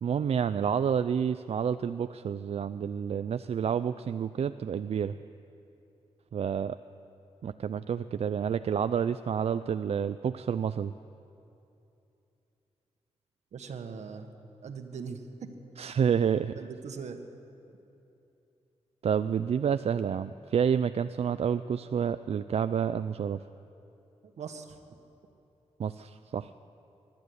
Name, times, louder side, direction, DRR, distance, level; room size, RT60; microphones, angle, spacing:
voice 1, 0.0-5.2 6.3-6.8 7.4-10.9 15.8-16.6 19.0-23.4 25.8-26.5, right 7 dB, 65° right, 11 dB, 0.5 m, -29 dB
voice 2, 13.5-14.3 14.6-15.5 16.6-17.2 24.4-24.8, right 6 dB, 85° right, 6 dB, 1.6 m, -40 dB
24.0 x 12.0 x 9.6 m, 2.8 s
cardioid pair, 75°, 11 cm